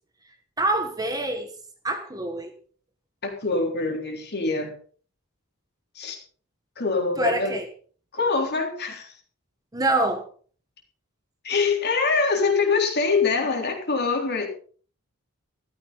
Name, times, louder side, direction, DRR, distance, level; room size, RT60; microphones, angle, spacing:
voice 1, 0.6-1.5 1.8-2.5 7.2-7.7 9.7-10.3, right 2 dB, 15° right, 6 dB, 1.5 m, -25 dB
voice 2, 3.2-4.7 6.0-6.2 6.8-7.5 8.1-9.1 11.4-14.5, left 4 dB, 45° left, 3 dB, 3.8 m, -24 dB
14.0 x 14.0 x 4.1 m, 0.43 s
head